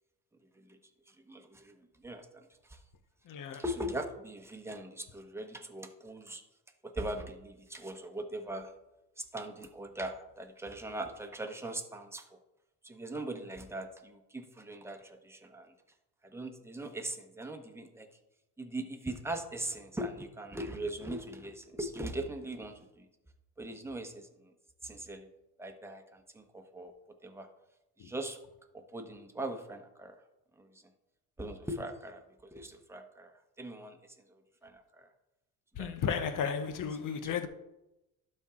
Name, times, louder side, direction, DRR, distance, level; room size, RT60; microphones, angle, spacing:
voice 1, 1.1-2.8 3.5-6.4 6.8-8.7 9.2-12.4 12.8-15.7 16.2-18.1 18.6-23.1 23.6-24.5 24.8-25.3 25.6-26.9 27.2-27.5 28.0-28.4 28.7-30.2 30.6-30.8 31.4-35.1 35.8-35.9 37.1-37.2, right 1 dB, 5° right, 1.1 m, -41 dB
voice 2, 3.3-3.6 28.0-28.1 35.8-37.5, left 7 dB, 55° left, 1.0 m, -34 dB
12.0 x 4.5 x 3.8 m
supercardioid pair, 85°, 38 cm